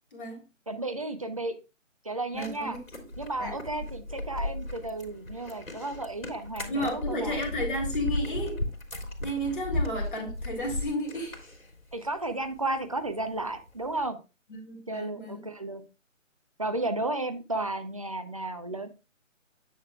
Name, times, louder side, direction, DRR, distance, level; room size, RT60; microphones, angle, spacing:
voice 1, 0.1-0.4 2.3-3.0 3.4-3.5 6.7-8.6 9.2-11.4 14.5-15.4, equal, 40° left, -1 dB, 2.8 m, -33 dB
voice 2, 0.7-1.5 2.0-2.8 3.2-7.4 11.9-14.2 14.9-15.8 16.6-18.9, right 2 dB, 25° right, 8 dB, 0.6 m, -33 dB
sound 1, 2.3-14.0, left 1 dB, 75° left, 3.0 m, -36 dB
10.0 x 6.5 x 2.3 m, 0.29 s
figure-of-eight pair, 150°, 39 cm